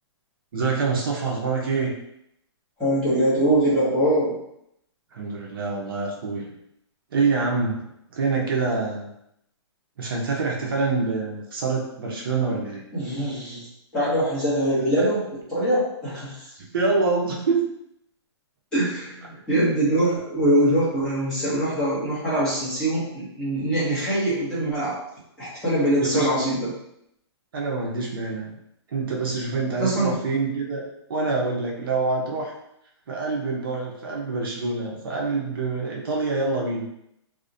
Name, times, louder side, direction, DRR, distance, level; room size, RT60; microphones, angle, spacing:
voice 1, 0.5-1.9 5.1-6.5 7.1-7.8 8.1-9.1 10.0-12.8 15.0-15.1 16.7-17.6 26.0-26.3 27.5-28.5 28.9-32.5 33.1-36.9, right 4 dB, 50° right, -1 dB, 0.5 m, -26 dB
voice 2, 2.8-4.3 12.9-13.7 13.9-15.2 15.5-16.5 18.7-25.0 25.4-26.7 29.8-30.1, right 1 dB, 5° left, -12 dB, 0.6 m, -23 dB
2.4 x 2.0 x 2.5 m, 0.77 s
hypercardioid pair, 170°, 15 cm